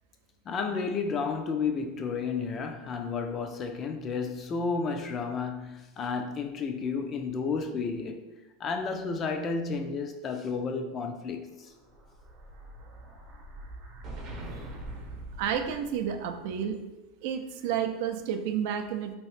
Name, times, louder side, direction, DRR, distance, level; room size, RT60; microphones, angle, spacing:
voice 1, 0.5-8.2 8.6-11.7, left 5 dB, 30° left, 5 dB, 0.4 m, -32 dB
Explosion, 11.6-16.2, right 1 dB, 45° right, 0.7 m, -43 dB
voice 2, 15.4-16.8 17.2-19.2, right 8 dB, 65° right, 7 dB, 0.4 m, -30 dB
2.9 x 2.7 x 3.1 m, 1.0 s
supercardioid pair, 125°, 0 cm